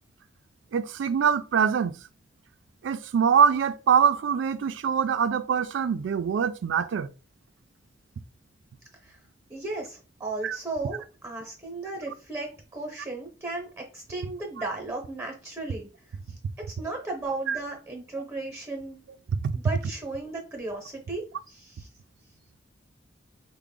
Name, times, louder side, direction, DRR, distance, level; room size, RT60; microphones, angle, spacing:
voice 1, 0.7-1.9 2.8-7.1 10.4-10.6 17.5-17.6, right 7 dB, 90° right, 0.3 m, -23 dB
voice 2, 9.5-15.9 16.7-19.0 19.5-21.9, right 2 dB, 15° right, 0.7 m, -35 dB
3.4 x 2.1 x 3.7 m
head